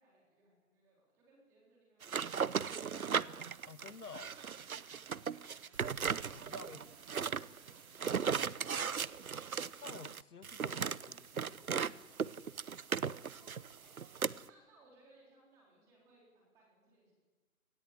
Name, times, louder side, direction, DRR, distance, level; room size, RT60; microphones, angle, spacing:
voice 1, 0.0-3.3 6.4-9.2 13.1-13.9 14.5-17.1, right 2 dB, 5° right, -3 dB, 3.9 m, -67 dB
sound 1, 2.0-11.9 12.2-14.5, right 6 dB, 70° right, 1.0 m, -37 dB
voice 2, 3.6-4.4 6.3-6.8 9.8-12.2, left 5 dB, 80° left, 12 dB, 1.6 m, -52 dB
sound 2, 4.1-9.7, right 4 dB, 20° right, 4.4 m, -65 dB
28.0 x 19.5 x 8.2 m, 1.3 s
hypercardioid pair, 175°, 45 cm